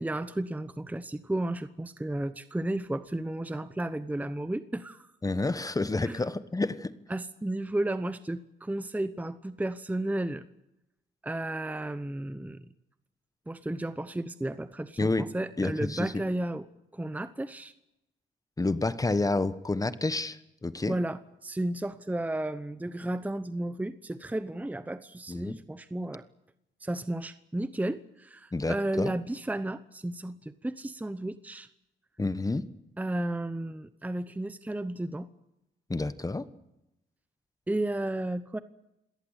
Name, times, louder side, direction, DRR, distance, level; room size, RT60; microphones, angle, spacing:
voice 1, 0.0-5.1 6.0-6.2 7.1-10.4 11.2-12.6 13.5-16.7 16.9-17.7 20.9-26.3 26.8-31.7 33.0-35.3 37.7-38.6, right 1 dB, 10° right, 12 dB, 0.9 m, -33 dB
voice 2, 5.2-6.9 15.0-15.3 15.6-16.1 18.6-21.0 25.3-25.6 28.5-29.1 32.2-32.6 35.9-36.5, left 2 dB, 15° left, 14 dB, 1.2 m, -29 dB
27.0 x 17.5 x 8.2 m, 0.89 s
cardioid pair, 90°, 20 cm